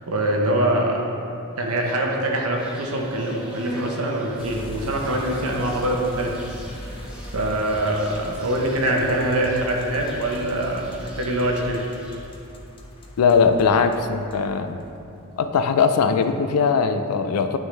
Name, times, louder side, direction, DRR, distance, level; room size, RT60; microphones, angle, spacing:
voice 1, 0.1-1.0 1.6-6.3 6.7-11.8, right 1 dB, 75° right, 0 dB, 0.9 m, -24 dB
Insect, 2.6-12.4, equal, 5° right, 0.8 m, -41 dB
sound 1, 4.4-15.3 15.7-16.3, equal, 25° left, 0.5 m, -40 dB
voice 2, 13.2-14.8 15.4-17.6, left 5 dB, 80° left, 8 dB, 0.4 m, -20 dB
9.2 x 3.7 x 3.3 m, 2.7 s
head